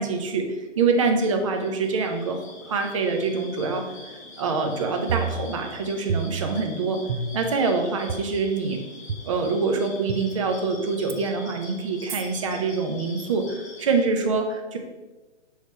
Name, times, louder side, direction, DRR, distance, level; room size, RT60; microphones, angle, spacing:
voice 1, 0.0-3.8 4.4-7.0 7.3-8.8 9.2-14.8, right 4 dB, 25° right, 4 dB, 0.6 m, -25 dB
sound 1, 1.4-14.1, left 2 dB, 15° left, 0.5 m, -44 dB
sound 2, 5.1-5.8 6.1-6.7 7.1-7.6 8.1-8.2 9.1-9.2 10.1-10.2 11.1-11.2 12.1-12.2, right 5 dB, 85° right, 0.8 m, -29 dB
6.3 x 3.3 x 5.4 m, 1.2 s
hypercardioid pair, 160°, 35 cm